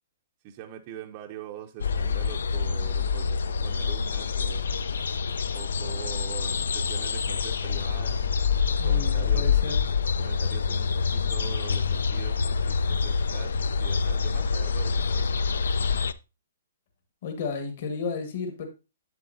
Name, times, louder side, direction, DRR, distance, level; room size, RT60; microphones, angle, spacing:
voice 1, 0.4-4.7 5.5-8.2 8.8-9.5 10.2-15.4, right 11 dB, 25° right, 2 dB, 0.5 m, -43 dB
sound 1, 1.8-16.1, left 5 dB, 90° left, 0.4 m, -26 dB
voice 2, 8.8-9.8 17.2-18.7, left 4 dB, 45° left, 5 dB, 1.5 m, -33 dB
8.2 x 7.7 x 2.6 m, 0.28 s
hypercardioid pair, 170°, 0 cm